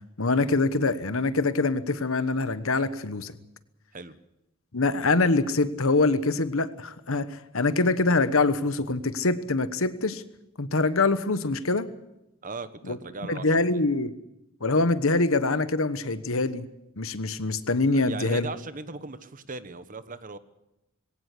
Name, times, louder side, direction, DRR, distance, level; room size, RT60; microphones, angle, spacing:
voice 1, 0.2-3.3 4.7-10.2 10.6-11.9 12.9-13.0 13.3-14.1 14.6-16.7 17.0-18.5, left 3 dB, 65° left, 13 dB, 1.2 m, -24 dB
voice 2, 12.4-13.8 17.9-20.4, right 3 dB, 40° right, 13 dB, 1.2 m, -38 dB
21.0 x 17.5 x 8.3 m, 0.89 s
head